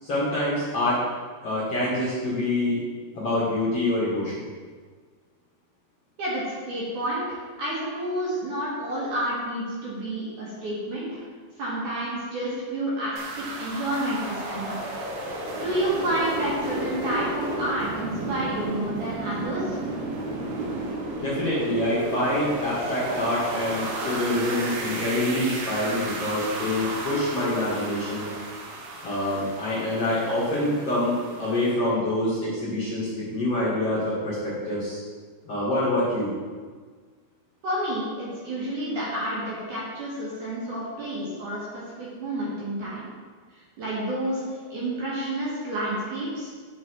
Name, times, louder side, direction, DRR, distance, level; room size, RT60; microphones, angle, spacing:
voice 1, 0.0-1.0 1.4-2.8 3.1-4.5 21.2-28.3 29.0-35.0 35.5-36.3, left 1 dB, 45° left, -9 dB, 2.4 m, -26 dB
voice 2, 6.2-11.2 11.6-14.8 15.5-19.8 37.6-43.1 43.5-46.5, right 1 dB, 55° right, -7 dB, 3.0 m, -30 dB
sound 1, 13.2-31.7, right 2 dB, 85° right, 3.7 m, -33 dB
9.3 x 6.1 x 4.7 m, 1.5 s
omnidirectional pair, 5.0 m